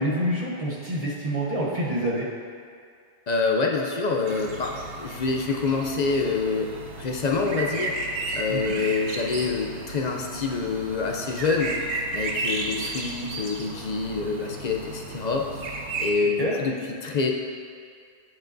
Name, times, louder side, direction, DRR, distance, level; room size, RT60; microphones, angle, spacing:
voice 1, 0.0-2.3 8.5-8.8 16.2-16.5, right 1 dB, 35° right, -4 dB, 1.0 m, -27 dB
voice 2, 3.3-6.7 7.0-11.8 12.1-15.5 16.0-16.8 17.0-17.3, left 4 dB, 50° left, 1 dB, 0.5 m, -26 dB
sound 1, 4.3-16.1, right 2 dB, 85° right, 1.0 m, -33 dB
7.6 x 7.1 x 2.6 m, 2.2 s
omnidirectional pair, 1.1 m